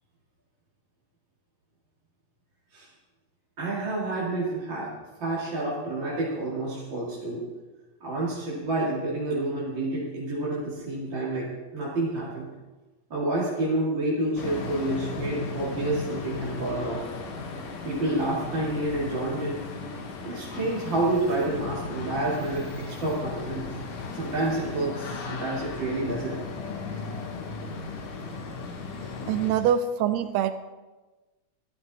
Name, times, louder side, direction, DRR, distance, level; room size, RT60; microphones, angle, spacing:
voice 1, 3.6-4.9 5.2-7.4 8.0-12.5 13.1-17.1 17.8-19.6 20.2-23.7 24.1-26.4, right 2 dB, 40° right, -6 dB, 3.0 m, -29 dB
sound 1, 14.4-29.5, left 4 dB, 90° left, 3.1 m, -36 dB
voice 2, 29.3-30.5, right 9 dB, 80° right, 11 dB, 1.6 m, -24 dB
14.0 x 12.5 x 4.2 m, 1.2 s
omnidirectional pair, 3.5 m